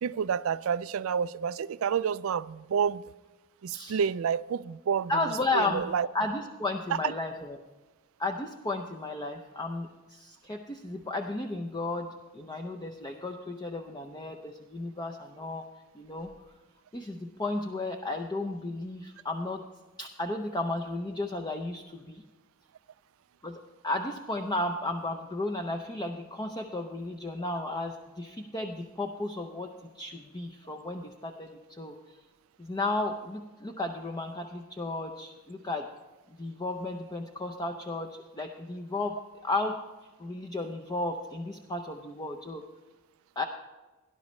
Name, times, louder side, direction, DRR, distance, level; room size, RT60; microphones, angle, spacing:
voice 1, 0.0-3.0 3.6-5.1 5.5-6.1, right 7 dB, 70° right, 0.4 m, -29 dB
voice 2, 5.1-5.8 6.1-7.6 8.2-12.1 12.3-15.6 15.9-16.3 16.9-19.6 20.0-22.2 23.4-23.6 23.8-29.7 29.9-31.9 32.6-35.9 36.4-39.8 40.2-42.6 43.4-43.5, left 2 dB, 20° left, 0.6 m, -34 dB
18.0 x 11.0 x 3.2 m
head